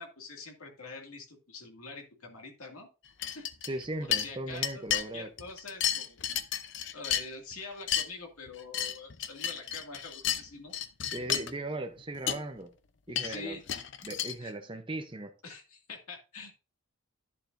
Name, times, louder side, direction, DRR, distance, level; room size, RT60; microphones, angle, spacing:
voice 1, 0.0-2.9 3.3-6.2 6.9-10.8 13.1-13.6 14.4-14.5 15.4-16.5, left 3 dB, 85° left, 2.2 m, -45 dB
sound 1, 3.2-3.9 4.1-5.1 5.4-7.5 7.8-8.1 8.5-10.4 10.7-11.5 12.0-12.1 12.3-12.4 13.1-14.3, left 10 dB, 55° left, 0.6 m, -32 dB
voice 2, 3.6-5.3 11.1-12.7 13.1-13.6 14.0-15.3, right 2 dB, 25° right, 0.7 m, -38 dB
11.5 x 7.3 x 2.6 m
head